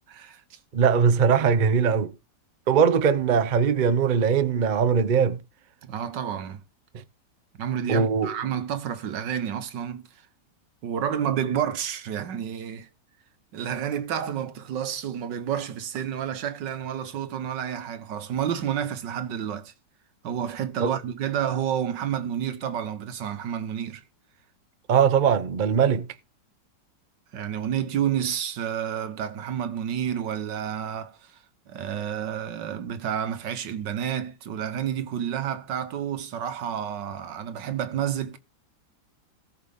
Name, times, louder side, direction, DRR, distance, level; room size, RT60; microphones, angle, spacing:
voice 1, 0.1-0.6 5.8-6.6 7.6-10.1 10.8-12.9 13.5-19.7 20.2-24.0 27.3-31.4 31.7-38.4, right 9 dB, 80° right, 1.7 m, -30 dB
voice 2, 0.7-2.1 2.7-5.4 6.9-7.0 7.9-8.3 20.8-20.9 24.9-26.1, right 6 dB, 45° right, 0.6 m, -21 dB
18.0 x 6.2 x 3.6 m
omnidirectional pair, 1.9 m